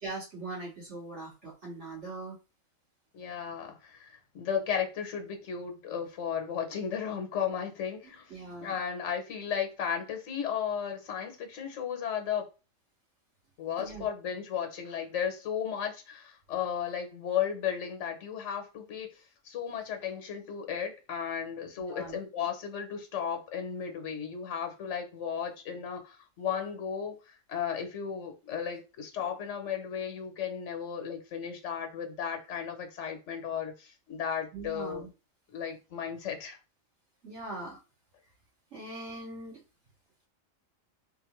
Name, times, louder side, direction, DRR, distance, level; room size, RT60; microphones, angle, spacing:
voice 1, 0.0-2.4 8.3-8.8 13.8-14.1 21.8-22.2 34.5-35.1 37.2-37.8 38.7-39.6, right 2 dB, 60° right, 2.2 m, -41 dB
voice 2, 3.1-8.3 8.6-12.5 13.6-19.1 19.4-35.0 35.5-36.6, left 8 dB, 65° left, 1.2 m, -34 dB
4.0 x 2.7 x 3.0 m
omnidirectional pair, 1.3 m